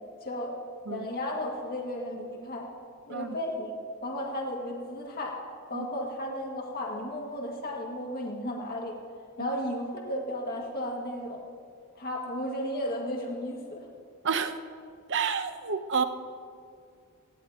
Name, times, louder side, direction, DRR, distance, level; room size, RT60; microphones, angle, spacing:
voice 1, 0.2-0.5 0.9-2.7 3.1-5.4 5.7-9.0 9.4-11.4 12.0-13.8, left 1 dB, 45° left, -1 dB, 1.9 m, -34 dB
voice 2, 14.2-14.6 15.1-16.0, right 6 dB, 60° right, 9 dB, 0.8 m, -29 dB
19.5 x 16.0 x 2.9 m, 2.3 s
head